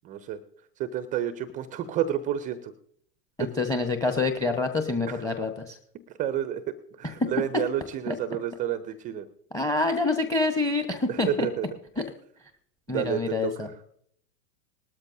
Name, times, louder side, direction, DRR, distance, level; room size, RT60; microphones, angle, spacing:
voice 1, 0.0-0.4 0.8-2.7 3.4-3.5 5.1-5.2 6.1-9.3 11.1-11.7 12.9-13.7, right 10 dB, 15° right, 13 dB, 0.4 m, -30 dB
voice 2, 3.4-5.8 8.1-8.2 9.5-11.5 12.9-13.7, left 3 dB, 5° left, 7 dB, 1.0 m, -26 dB
19.0 x 13.0 x 2.6 m, 0.68 s
hypercardioid pair, 105°, 50 cm